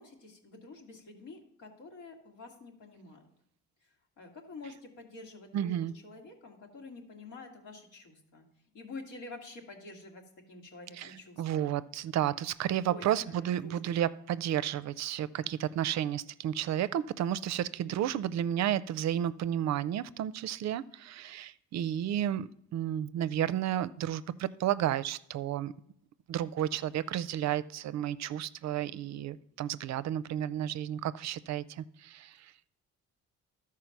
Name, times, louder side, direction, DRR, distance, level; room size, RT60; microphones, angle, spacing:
voice 1, 0.0-3.2 4.2-8.5 8.7-11.6 12.9-14.0 15.4-15.5, left 3 dB, 85° left, 2.1 m, -48 dB
voice 2, 5.5-5.9 10.9-25.7 26.3-32.3, right 11 dB, 65° right, 0.5 m, -32 dB
12.5 x 4.7 x 5.8 m
cardioid pair, 90°, 30 cm